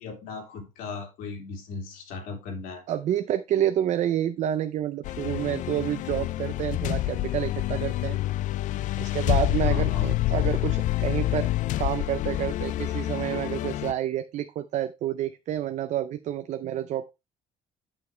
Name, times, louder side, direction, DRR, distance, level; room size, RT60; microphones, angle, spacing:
voice 1, 0.0-2.8 9.6-10.1, left 4 dB, 90° left, 3.2 m, -37 dB
voice 2, 2.9-8.2 9.0-11.5 11.8-17.1, right 11 dB, 55° right, 0.6 m, -29 dB
sound 1, 5.0-13.9, left 15 dB, 60° left, 0.4 m, -27 dB
8.9 x 7.1 x 3.2 m
cardioid pair, 140°, 14 cm